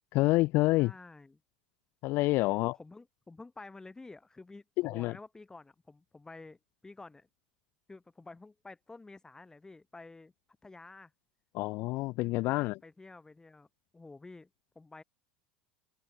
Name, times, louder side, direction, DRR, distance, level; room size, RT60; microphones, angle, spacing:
voice 1, 0.1-0.9 2.0-2.7 4.8-5.1 11.5-12.8, left 20 dB, 50° left, 0.7 m, -27 dB
voice 2, 0.8-1.4 2.4-7.3 7.9-10.3 10.6-11.1 12.4-13.7 13.9-14.5 14.8-15.0, left 3 dB, 15° left, 7.3 m, -51 dB
hypercardioid pair, 80°, 5 cm